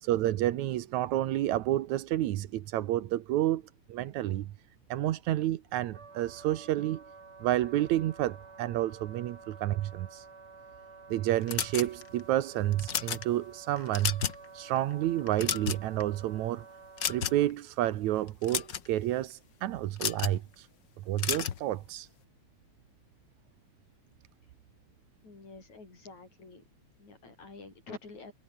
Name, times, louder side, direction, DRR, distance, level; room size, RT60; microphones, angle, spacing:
voice 1, 0.0-3.6 3.9-4.5 4.9-7.0 7.4-10.3 11.1-14.2 14.5-16.6 17.1-20.7 21.1-22.1, right 14 dB, 80° right, 2.4 m, -30 dB
Wind instrument woodwind instrument, 5.9-17.5, right 4 dB, 45° right, 4.7 m, -51 dB
sound 1, 11.5-12.2 12.7-13.2 13.8-14.4 14.8-14.9 15.3-16.0 17.0-17.5 18.3-18.9 20.0-20.4 21.2-21.6, left 9 dB, 50° left, 1.6 m, -32 dB
voice 2, 25.2-26.6 27.0-28.3, left 3 dB, 75° left, 8.4 m, -48 dB
omnidirectional pair, 3.3 m